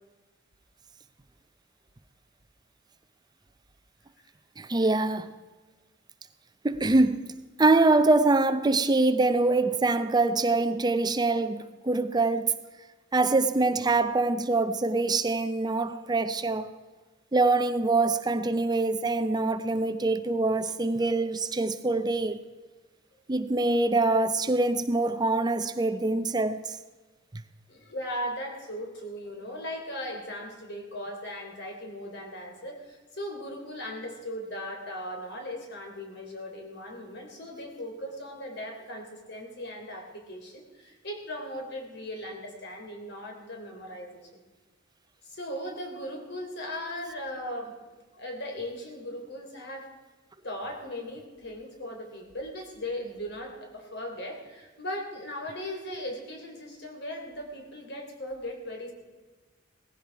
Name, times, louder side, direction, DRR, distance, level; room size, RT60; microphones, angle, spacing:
voice 1, 4.6-5.3 6.6-7.3 7.6-12.5 13.1-16.7 17.3-22.4 23.3-26.8, right 3 dB, 20° right, 0.6 m, -24 dB
voice 2, 27.7-44.3 45.2-47.8 48.1-49.9 50.4-58.9, left 1 dB, 60° left, 3.6 m, -38 dB
18.0 x 15.5 x 4.7 m
head